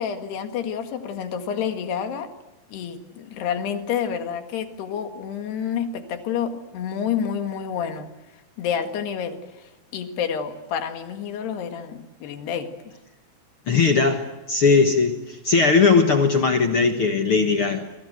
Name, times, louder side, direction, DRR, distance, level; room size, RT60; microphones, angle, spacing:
voice 1, 0.0-2.3 2.7-8.1 8.6-12.7, left 8 dB, 90° left, 6 dB, 4.0 m, -29 dB
voice 2, 13.7-17.9, left 4 dB, 55° left, 5 dB, 1.5 m, -19 dB
29.5 x 23.5 x 8.0 m, 1.0 s
omnidirectional pair, 4.6 m